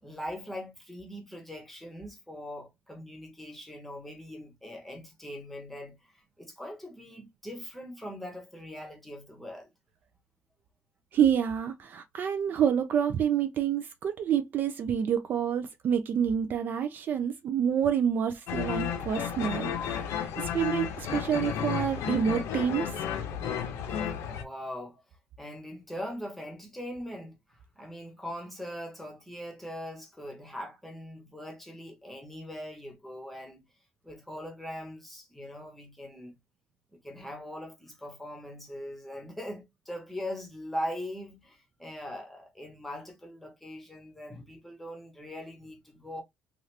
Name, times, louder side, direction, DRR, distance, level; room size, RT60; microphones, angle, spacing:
voice 1, 0.0-9.7 24.2-25.0 25.4-33.6 34.0-36.4 36.9-46.2, equal, 5° left, 0.8 m, -41 dB
voice 2, 11.1-23.1, right 8 dB, 40° right, 0.3 m, -28 dB
sound 1, 18.5-24.4, left 8 dB, 80° left, 0.7 m, -32 dB
2.8 x 2.4 x 3.1 m
cardioid pair, 160°, 5 cm